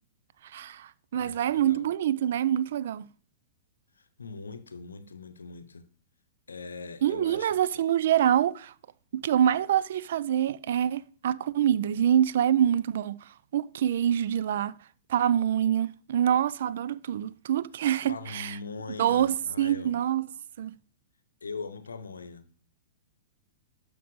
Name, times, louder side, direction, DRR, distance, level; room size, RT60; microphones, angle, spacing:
voice 1, 0.4-3.1 7.0-8.7 9.1-14.7 15.1-18.6 19.0-20.3 20.6-20.7, right 10 dB, 60° right, 0.4 m, -26 dB
voice 2, 1.1-1.9 4.0-5.9 6.5-7.8 18.1-20.0 21.4-22.5, left 4 dB, 80° left, 0.7 m, -41 dB
12.5 x 5.2 x 3.1 m
figure-of-eight pair, 110°, 0 cm